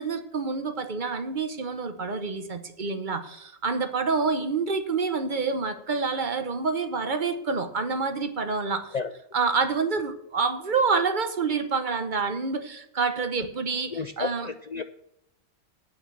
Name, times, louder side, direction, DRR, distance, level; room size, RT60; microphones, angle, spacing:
voice 1, 0.0-9.0 9.3-14.5, right 4 dB, 40° right, 9 dB, 1.0 m, -27 dB
voice 2, 13.9-14.8, left 4 dB, 60° left, 9 dB, 0.4 m, -32 dB
9.0 x 6.1 x 7.5 m, 0.79 s
omnidirectional pair, 1.3 m